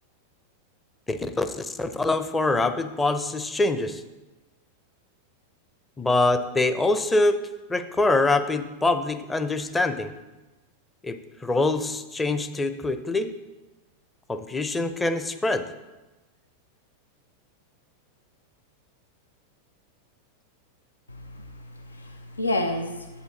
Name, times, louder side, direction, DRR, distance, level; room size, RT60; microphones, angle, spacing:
voice 1, 1.1-4.0 6.0-7.4 7.7-10.1 11.0-13.3 14.3-15.6, left 2 dB, 10° left, 9 dB, 0.6 m, -24 dB
voice 2, 21.1-23.2, left 1 dB, 80° left, 6 dB, 0.6 m, -31 dB
8.2 x 8.1 x 3.9 m, 1.1 s
figure-of-eight pair, 90°, 0 cm